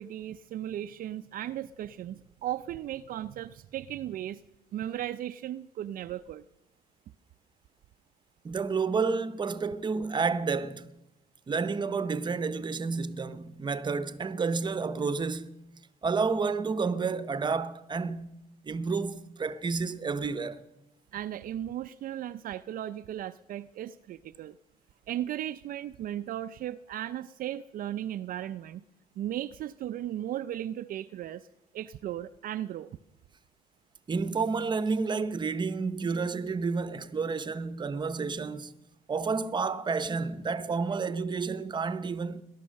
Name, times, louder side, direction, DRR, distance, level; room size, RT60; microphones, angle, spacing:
voice 1, 0.0-4.4 4.7-6.4 21.1-24.6 25.1-28.8 29.2-31.5 31.7-32.9, right 12 dB, 55° right, 0.5 m, -36 dB
voice 2, 8.4-10.9 11.5-15.5 16.0-18.3 18.7-20.6 34.1-38.7 39.1-42.4, right 4 dB, 25° right, 0.9 m, -30 dB
18.5 x 12.0 x 6.4 m
cardioid pair, 110°, 17 cm